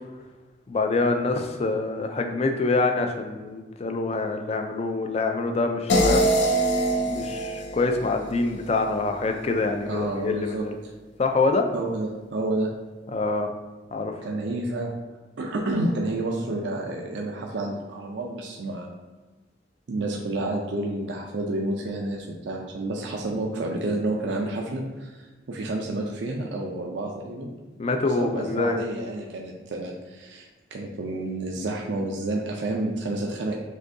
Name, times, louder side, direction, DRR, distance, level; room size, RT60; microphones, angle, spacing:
voice 1, 0.7-6.3 7.1-10.8 11.2-11.7 13.1-13.5 13.9-14.1 27.8-28.8, left 3 dB, 35° left, 5 dB, 0.4 m, -25 dB
sound 1, 5.9-9.0, right 1 dB, 75° left, 0.6 m, -24 dB
voice 2, 9.9-10.7 11.7-12.7 14.2-15.0 15.4-18.9 19.9-27.5 28.2-33.5, right 2 dB, 70° right, 0 dB, 0.4 m, -29 dB
6.2 x 2.7 x 2.6 m, 1.3 s
head